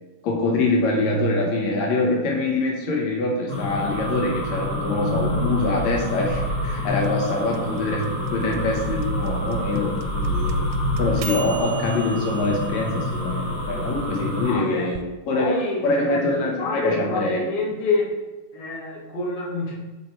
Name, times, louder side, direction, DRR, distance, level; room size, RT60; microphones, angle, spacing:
voice 1, 0.2-8.0 8.3-10.6 11.0-15.0 15.3-17.5, left 2 dB, 70° left, 0 dB, 2.2 m, -24 dB
sound 1, 3.5-14.5, left 1 dB, 55° left, 3.6 m, -27 dB
sound 2, 6.9-15.0, right 9 dB, 80° right, 1.9 m, -40 dB
voice 2, 14.4-14.9 15.3-18.1 18.5-19.7, left 3 dB, 30° left, -5 dB, 1.1 m, -27 dB
7.4 x 4.4 x 4.3 m, 1.1 s
omnidirectional pair, 3.5 m